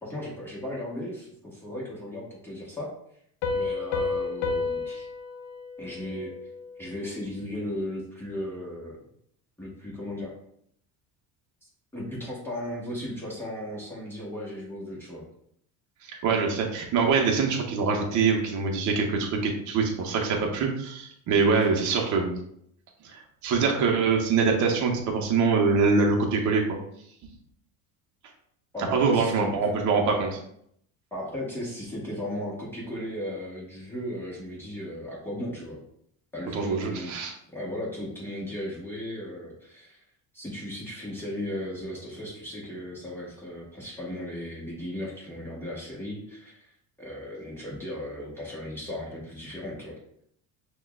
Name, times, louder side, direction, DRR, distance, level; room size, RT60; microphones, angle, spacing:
voice 1, 0.0-2.9 3.5-5.1 5.8-6.3 6.8-8.9 9.6-10.3 11.9-15.3 28.7-29.6 31.1-35.8 36.3-37.1 37.5-40.0 40.3-46.7 47.0-49.9, left 1 dB, 5° left, -6 dB, 1.0 m, -36 dB
Piano, 3.4-6.8, left 4 dB, 80° left, 0.7 m, -31 dB
voice 2, 16.0-22.3 23.0-26.6 28.9-30.4 36.5-37.3, right 4 dB, 50° right, 1 dB, 0.8 m, -24 dB
6.1 x 2.3 x 2.2 m, 0.71 s
cardioid pair, 125°, 38 cm